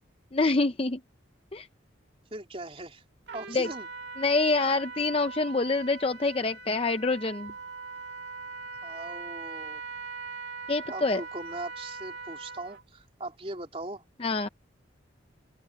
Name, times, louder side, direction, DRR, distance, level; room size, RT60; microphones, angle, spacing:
voice 1, 0.3-1.0 1.5-1.7 3.5-3.7 4.2-7.5 10.7-11.2 14.2-14.5, left 3 dB, 30° left, 0.6 m, -26 dB
voice 2, 2.3-3.0 3.3-3.9 8.8-9.8 10.9-14.0, right 2 dB, 30° right, 3.7 m, -39 dB
Trumpet, 3.3-12.8, right 4 dB, 60° right, 2.2 m, -41 dB
open air
head